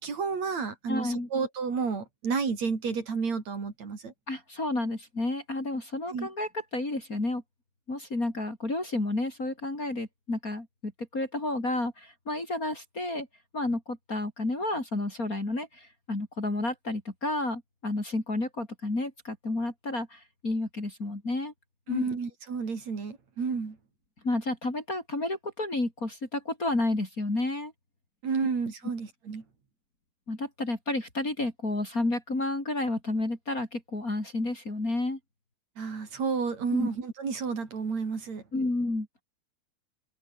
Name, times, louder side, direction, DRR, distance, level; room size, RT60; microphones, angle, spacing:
voice 1, 0.0-4.1 6.1-6.3 21.9-23.8 28.2-29.4 35.8-38.4, right 5 dB, 65° right, 5.2 m, -31 dB
voice 2, 0.9-1.3 4.3-7.4 7.9-13.3 13.5-21.5 21.9-22.0 24.2-27.7 30.3-35.2 36.7-36.9 38.5-39.1, left 2 dB, 25° left, 4.9 m, -31 dB
open air
omnidirectional pair, 3.4 m